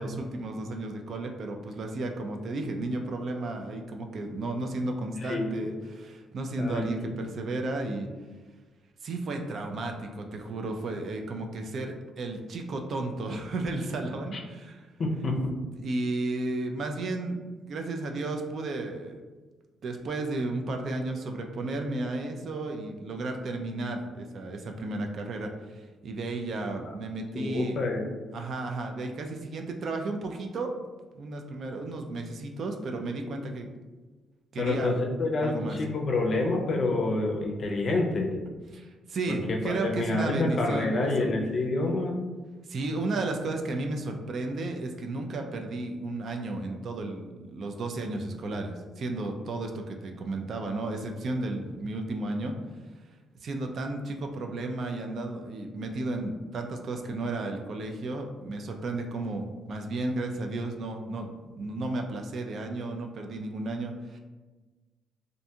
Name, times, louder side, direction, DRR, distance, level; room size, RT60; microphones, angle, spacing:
voice 1, 0.0-8.1 9.0-14.8 15.8-17.4 17.7-19.2 19.8-27.8 28.3-30.7 31.1-33.7 34.5-35.0 35.4-35.8 38.7-41.3 42.7-52.5 53.4-64.2, right 2 dB, 55° right, 4 dB, 0.3 m, -33 dB
voice 2, 5.2-5.5 6.6-7.1 15.0-15.5 26.9-27.0 27.3-28.1 34.6-38.4 39.3-42.2, left 2 dB, 50° left, 1 dB, 0.5 m, -28 dB
2.5 x 2.2 x 2.7 m, 1.3 s
cardioid pair, 90°, 0 cm